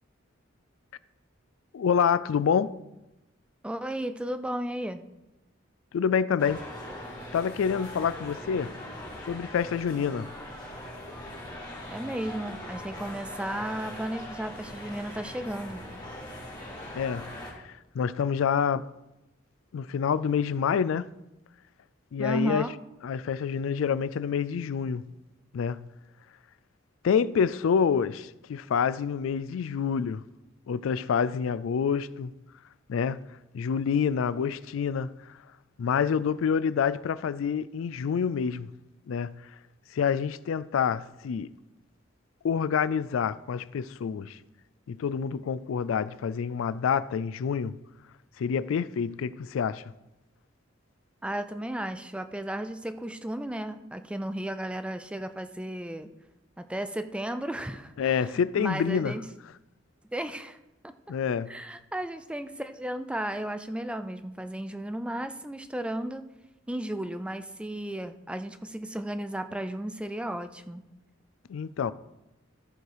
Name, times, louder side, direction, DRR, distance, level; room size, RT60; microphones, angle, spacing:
voice 1, 1.7-2.8 5.9-6.6 7.3-8.7 9.2-10.3 16.9-17.2 17.6-18.9 19.7-21.1 22.1-22.7 23.0-25.0 25.5-25.9 27.0-30.2 30.7-32.3 32.9-33.2 33.5-35.1 35.8-38.7 39.1-39.3 39.9-41.5 42.4-44.4 44.9-47.7 48.4-49.8 58.0-59.2 61.1-61.5 71.5-71.9, left 7 dB, 85° left, 0.3 m, -27 dB
voice 2, 3.6-5.0 11.9-15.8 22.2-22.7 51.2-56.1 56.6-59.3 60.1-60.6 60.8-60.9 61.5-66.3 66.7-70.9, right 1 dB, 5° right, 0.4 m, -34 dB
sound 1, 6.4-17.5, left 1 dB, 20° left, 2.5 m, -41 dB
14.5 x 4.8 x 4.7 m
head